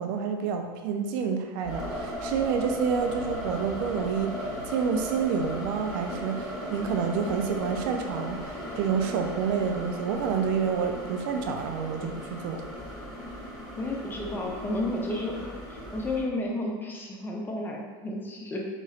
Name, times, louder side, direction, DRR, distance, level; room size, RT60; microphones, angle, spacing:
voice 1, 0.0-4.4 4.7-12.6, right 6 dB, 70° right, 5 dB, 0.4 m, -28 dB
sound 1, 1.6-16.2, equal, 5° right, 1.0 m, -37 dB
voice 2, 13.8-18.6, left 1 dB, 15° left, -1 dB, 0.5 m, -32 dB
3.0 x 2.9 x 2.4 m, 1.4 s
supercardioid pair, 120°, 11 cm